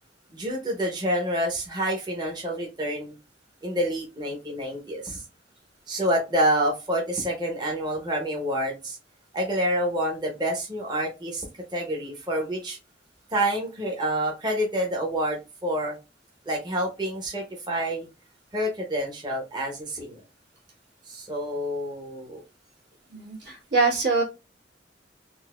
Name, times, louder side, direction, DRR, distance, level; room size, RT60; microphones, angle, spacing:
voice 1, 0.3-3.1 3.6-5.2 5.9-9.0 9.3-11.5 11.7-12.8 13.3-15.9 16.5-18.1 18.5-20.2 21.1-22.4, equal, 25° right, -1 dB, 0.7 m, -28 dB
voice 2, 23.1-24.2, right 4 dB, 80° right, -3 dB, 1.7 m, -24 dB
3.8 x 2.4 x 2.3 m, 0.27 s
head